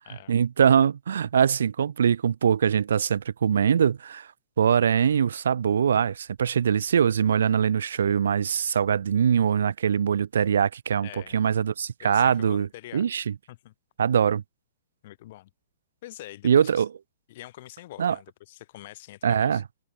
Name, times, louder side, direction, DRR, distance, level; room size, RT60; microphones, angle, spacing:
voice 1, 0.3-4.3 4.6-12.7 12.9-13.3 14.0-14.4 16.4-16.9 18.0-18.2 19.2-19.6, right 8 dB, 85° right, 0.6 m, -22 dB
voice 2, 11.0-11.4 12.0-13.1 13.5-13.7 15.0-15.5 16.0-16.8 17.3-19.6, left 16 dB, 45° left, 6.7 m, -45 dB
hypercardioid pair, 160°, 0 cm